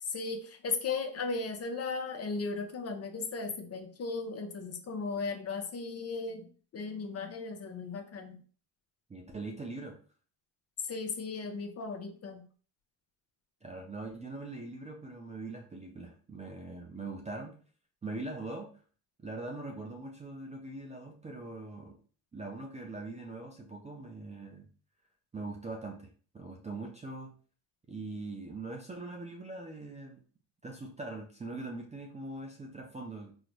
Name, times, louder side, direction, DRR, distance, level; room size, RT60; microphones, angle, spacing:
voice 1, 0.0-8.4 10.9-12.4, left 4 dB, 35° left, 6 dB, 0.6 m, -36 dB
voice 2, 9.1-10.0 13.6-17.6 18.0-18.7 19.2-22.0 22.3-24.7 25.3-27.3 27.9-30.2 30.6-33.3, right 2 dB, 15° right, 1 dB, 0.4 m, -42 dB
3.8 x 2.1 x 3.0 m, 0.42 s
cardioid pair, 100°, 44 cm